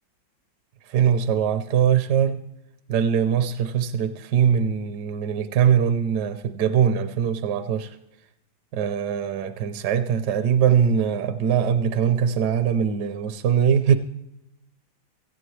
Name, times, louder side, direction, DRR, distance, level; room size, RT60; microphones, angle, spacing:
voice 1, 0.9-2.4 2.9-8.0 8.7-14.0, right 8 dB, 70° right, 10 dB, 1.1 m, -22 dB
17.0 x 14.5 x 3.2 m, 0.88 s
omnidirectional pair, 2.1 m